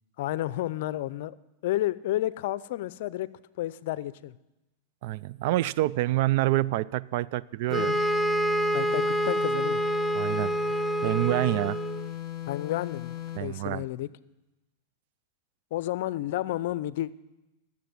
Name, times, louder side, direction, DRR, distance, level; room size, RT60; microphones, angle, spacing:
voice 1, 0.2-1.3 1.6-3.3 3.6-4.4 7.8-8.0 8.7-9.8 12.5-14.1 15.7-17.1, left 14 dB, 65° left, 0.5 m, -31 dB
voice 2, 5.0-7.9 10.1-10.6 11.0-11.8 13.4-13.8, right 16 dB, 60° right, 0.4 m, -27 dB
sound 1, 7.7-13.5, left 13 dB, 35° left, 2.1 m, -37 dB
sound 2, 7.7-12.1, right 1 dB, 5° right, 0.5 m, -27 dB
14.5 x 7.4 x 9.6 m
hypercardioid pair, 120°, 0 cm